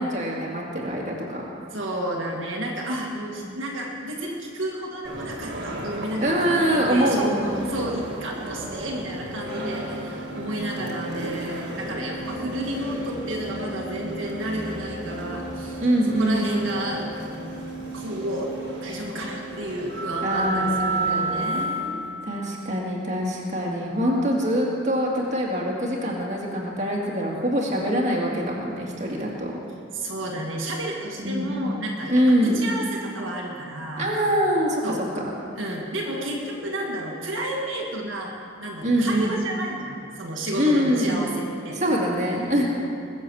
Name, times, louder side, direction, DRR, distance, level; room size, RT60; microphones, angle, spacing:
voice 1, 0.0-1.4 3.1-3.5 6.2-7.6 15.8-16.6 20.2-21.6 22.2-29.5 31.2-31.5 32.1-32.6 34.0-35.3 38.8-39.4 40.6-41.2 41.7-42.7, equal, 35° right, -3 dB, 2.3 m, -24 dB
voice 2, 1.7-15.8 16.2-18.5 18.8-22.0 29.9-34.1 34.8-35.0 35.6-38.3 38.6-41.8, right 1 dB, 65° right, -2 dB, 1.9 m, -31 dB
sound 1, 5.0-22.2, right 2 dB, 50° right, 2.2 m, -33 dB
Organ, 9.3-20.0, right 1 dB, 40° left, 1.1 m, -38 dB
21.0 x 7.4 x 7.1 m, 2.6 s
head